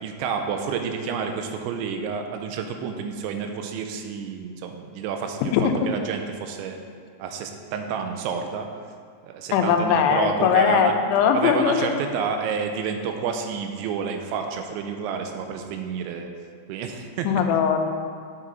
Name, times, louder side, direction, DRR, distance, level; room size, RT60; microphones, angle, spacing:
voice 1, 0.0-5.5 5.8-6.8 7.2-8.7 9.2-10.9 11.3-16.3 16.7-17.3, right 6 dB, 85° right, 5 dB, 3.0 m, -29 dB
voice 2, 9.5-12.0 17.2-17.9, left 7 dB, 85° left, 5 dB, 3.0 m, -20 dB
8.1 x 7.4 x 3.9 m, 2.1 s
omnidirectional pair, 5.3 m